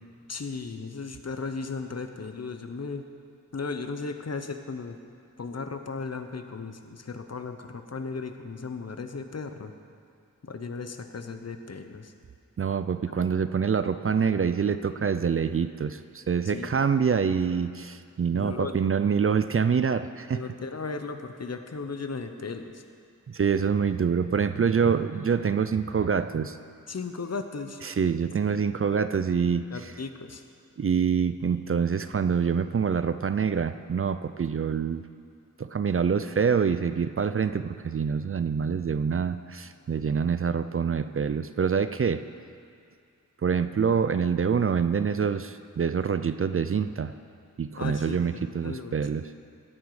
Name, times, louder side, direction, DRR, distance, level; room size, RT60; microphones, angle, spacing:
voice 1, 0.3-3.1 3.5-5.0 5.4-9.7 10.4-12.1 13.1-13.2 16.5-16.8 18.3-18.8 20.3-22.8 26.9-27.8 29.7-30.4 47.8-48.2 48.6-49.0, left 4 dB, 50° left, 7 dB, 0.9 m, -36 dB
voice 2, 12.6-20.4 23.3-26.6 27.8-29.9 30.8-35.1 35.6-42.2 43.4-47.1 47.6-49.3, right 6 dB, 40° right, 11 dB, 0.4 m, -26 dB
16.5 x 9.1 x 4.9 m, 2.3 s
wide cardioid pair, 65°, 33 cm